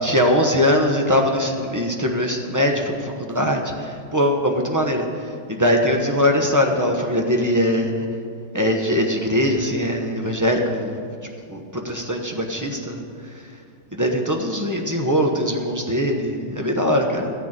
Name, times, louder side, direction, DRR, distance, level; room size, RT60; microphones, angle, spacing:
voice 1, 0.0-8.1 8.5-11.0 11.5-13.4 13.9-17.3, equal, 15° right, 2 dB, 0.7 m, -21 dB
13.5 x 6.5 x 8.9 m, 2.3 s
omnidirectional pair, 2.0 m